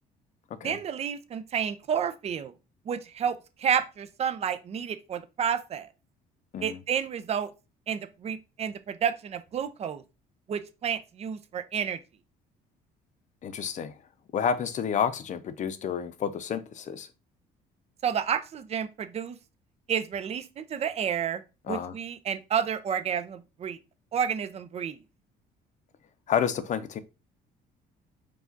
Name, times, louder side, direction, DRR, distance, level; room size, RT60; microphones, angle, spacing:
voice 1, 0.6-2.5 2.9-5.9 6.6-7.5 7.9-10.0 10.5-12.0 18.0-19.4 19.9-21.4 21.7-23.8 24.1-25.0, right 8 dB, 40° right, 0.5 m, -30 dB
voice 2, 13.4-13.9 14.3-17.1 21.7-21.9 26.3-27.0, left 8 dB, 45° left, 0.6 m, -30 dB
4.8 x 2.4 x 3.8 m
cardioid pair, 110°, 17 cm